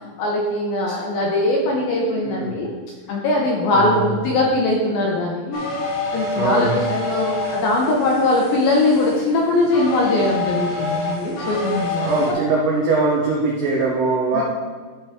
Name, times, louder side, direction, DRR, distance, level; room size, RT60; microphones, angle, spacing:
voice 1, 0.2-2.7 3.1-5.6 6.1-12.3 14.3-14.4, left 2 dB, 75° left, -2 dB, 2.2 m, -21 dB
voice 2, 2.0-2.6 3.8-4.3 6.3-6.8 12.0-14.4, right 3 dB, 85° right, -3 dB, 1.9 m, -22 dB
sound 1, 5.5-12.3, left 2 dB, 45° left, 2.0 m, -27 dB
12.0 x 5.5 x 3.6 m, 1.5 s
omnidirectional pair, 5.3 m